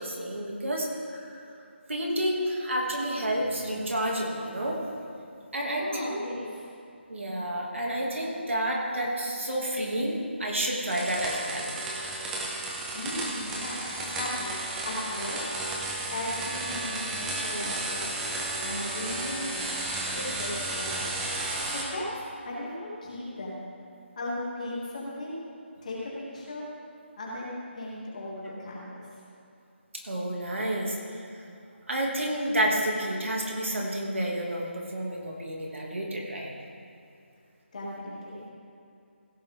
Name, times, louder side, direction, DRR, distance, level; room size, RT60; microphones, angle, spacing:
voice 1, 0.0-1.3 1.9-4.8 5.5-6.2 7.1-11.7 30.1-31.3 31.9-36.5, right 1 dB, 90° right, -2 dB, 2.6 m, -30 dB
voice 2, 5.6-6.6 12.9-13.8 14.0-14.6 14.8-15.4 16.1-18.1 18.6-19.6 20.1-21.1 21.7-23.6 24.2-25.4 25.8-26.7 27.2-29.0 37.7-38.5, left 1 dB, 35° left, -5 dB, 2.7 m, -36 dB
sound 1, 10.9-21.8, right 2 dB, 5° right, 0.5 m, -33 dB
16.0 x 7.5 x 3.8 m, 2.6 s
figure-of-eight pair, 170°, 7 cm